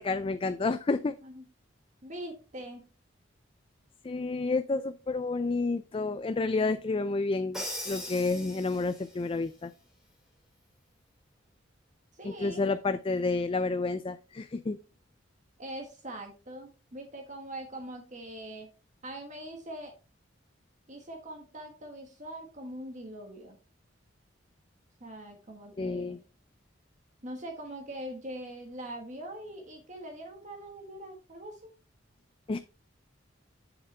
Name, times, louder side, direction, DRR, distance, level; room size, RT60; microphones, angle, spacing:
voice 1, 0.0-1.1 4.0-9.7 12.2-14.8 25.8-26.2 32.5-32.6, left 3 dB, 30° left, 12 dB, 0.3 m, -30 dB
voice 2, 2.0-2.8 12.1-12.7 15.6-18.7 19.0-19.9 20.9-23.6 25.0-26.2 27.2-31.7, right 1 dB, 40° right, 3 dB, 1.5 m, -42 dB
Crash cymbal, 7.5-9.2, left 1 dB, 5° right, 2.2 m, -39 dB
8.0 x 7.3 x 3.3 m, 0.32 s
head